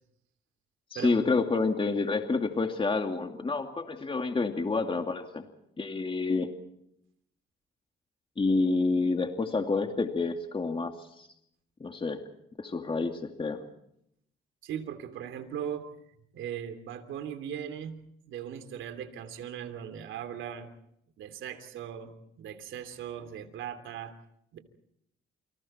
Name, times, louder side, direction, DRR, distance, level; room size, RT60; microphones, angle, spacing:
voice 1, 0.9-5.4 5.8-6.5 8.4-11.3 11.8-12.2 12.6-13.6, left 3 dB, 25° left, 5 dB, 2.5 m, -28 dB
voice 2, 14.6-15.9 16.3-18.0 18.3-20.7 21.2-24.1 24.5-24.6, right 9 dB, 80° right, 9 dB, 3.1 m, -38 dB
29.5 x 25.5 x 4.4 m, 0.74 s
cardioid pair, 90°, 20 cm